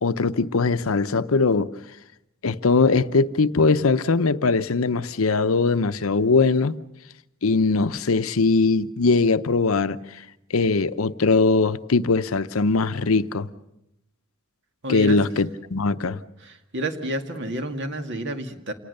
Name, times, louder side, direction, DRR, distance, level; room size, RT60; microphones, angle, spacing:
voice 1, 0.0-1.7 2.4-6.7 7.4-10.0 10.5-13.5 14.9-16.2, left 4 dB, 75° left, 0.7 m, -21 dB
voice 2, 14.8-15.2 16.4-18.7, right 1 dB, 55° right, 2.1 m, -30 dB
28.0 x 19.0 x 6.7 m
head